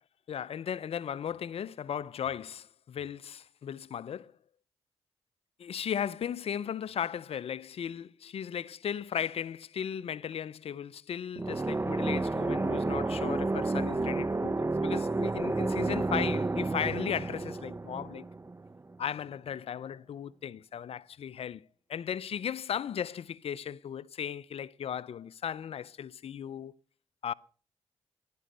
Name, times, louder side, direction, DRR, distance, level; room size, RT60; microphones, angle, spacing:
voice 1, 0.3-4.3 5.6-18.2 19.0-21.6 21.9-26.7 27.2-27.3, left 8 dB, 70° left, 0.6 m, -36 dB
sound 1, 11.4-19.0, right 3 dB, 25° right, 0.7 m, -31 dB
14.5 x 11.5 x 6.7 m
supercardioid pair, 45°, 11 cm